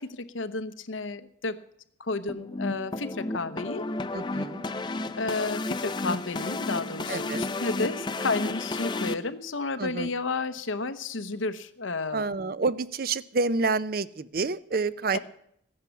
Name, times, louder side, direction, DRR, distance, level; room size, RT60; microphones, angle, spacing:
voice 1, 0.0-1.6 2.0-3.8 5.2-12.2 15.1-15.2, left 3 dB, 90° left, 10 dB, 1.0 m, -32 dB
sound 1, 2.3-9.1, left 2 dB, 25° left, 0.5 m, -32 dB
voice 2, 4.1-4.7 7.1-7.5 9.8-10.1 12.1-15.2, right 4 dB, 50° right, 16 dB, 0.5 m, -28 dB
15.0 x 10.5 x 7.1 m, 0.71 s
head